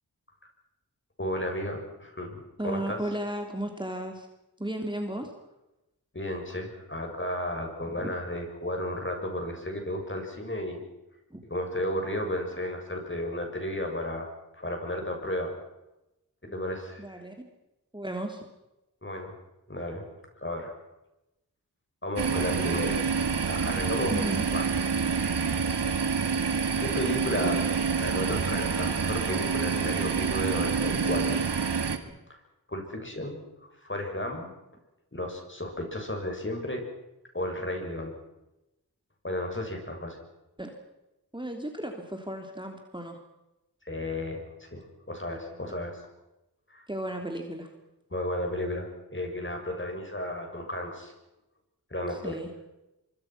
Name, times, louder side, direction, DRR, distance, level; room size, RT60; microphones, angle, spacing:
voice 1, 1.2-3.0 6.1-10.8 11.5-14.3 14.5-15.5 16.4-17.0 19.0-19.4 19.7-20.1 20.4-20.7 22.0-23.0 23.4-24.7 26.8-27.6 28.0-31.4 32.3-32.4 32.7-33.4 33.8-34.5 35.1-36.8 37.3-38.2 39.2-40.2 43.8-46.0 46.7-46.8 48.1-51.1 51.9-52.4, left 1 dB, 30° left, 3 dB, 7.2 m, -33 dB
voice 2, 2.6-4.3 4.6-5.3 8.0-8.1 11.3-11.4 17.0-17.3 17.9-18.4 24.1-24.4 27.4-27.7 40.6-40.7 41.3-43.2 45.3-45.6 46.9-47.7 52.1-52.5, right 1 dB, 10° right, 3 dB, 3.4 m, -34 dB
sound 1, 22.2-32.0, right 5 dB, 85° right, 1.9 m, -27 dB
25.0 x 24.5 x 6.1 m, 0.95 s
cardioid pair, 40°, 40 cm